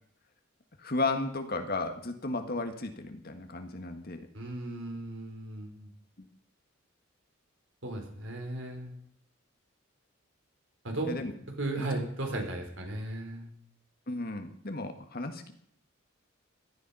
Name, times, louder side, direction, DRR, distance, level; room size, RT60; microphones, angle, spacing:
voice 1, 0.8-4.2 6.2-6.3 11.1-11.3 11.8-11.9 14.1-15.5, left 3 dB, 50° left, 6 dB, 1.7 m, -34 dB
voice 2, 4.3-5.9 7.8-8.9 10.8-11.2 11.6-13.5, right 2 dB, 65° right, 3 dB, 3.7 m, -36 dB
16.5 x 12.0 x 5.5 m, 0.66 s
head